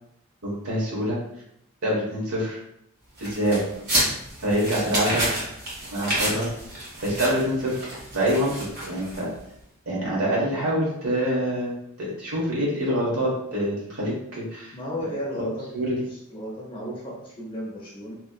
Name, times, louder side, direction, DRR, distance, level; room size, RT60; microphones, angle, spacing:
voice 1, 0.4-1.2 1.8-2.6 3.2-3.6 4.4-5.2 5.9-6.5 7.0-7.9 8.1-8.5 8.9-9.3 9.9-14.7 15.7-15.9, equal, 85° right, -5 dB, 1.1 m, -25 dB
sound 1, 3.2-9.4, right 1 dB, 50° right, 1.4 m, -29 dB
voice 2, 14.7-15.7 16.1-18.1, equal, 25° left, -5 dB, 0.7 m, -33 dB
3.0 x 2.7 x 2.2 m, 0.77 s
head